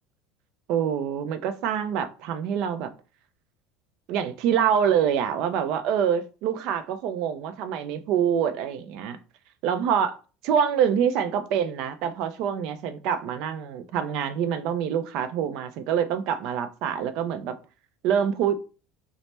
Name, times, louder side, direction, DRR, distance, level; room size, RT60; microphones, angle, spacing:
voice 1, 0.7-2.9 4.1-9.2 9.6-10.2 10.4-17.6 18.0-18.6, right 8 dB, 55° right, 0.4 m, -25 dB
3.2 x 2.0 x 4.1 m
cardioid pair, 165°, 0 cm